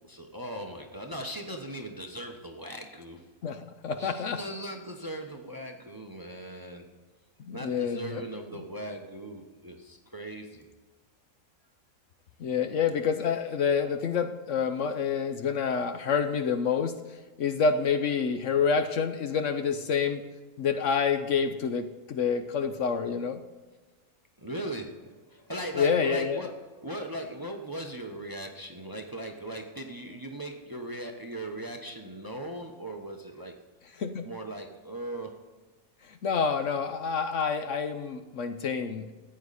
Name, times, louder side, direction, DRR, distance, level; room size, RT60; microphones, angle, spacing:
voice 1, 0.0-3.3 4.0-6.9 7.5-10.7 12.8-12.9 24.4-33.6 34.2-35.4, right 1 dB, 15° right, 3 dB, 0.9 m, -39 dB
voice 2, 3.4-4.4 7.5-8.2 12.4-16.9 17.4-20.2 20.6-23.4 25.8-26.4 34.0-34.3 36.1-39.1, left 6 dB, 60° left, 8 dB, 1.0 m, -28 dB
14.0 x 8.8 x 4.1 m, 1.3 s
omnidirectional pair, 1.5 m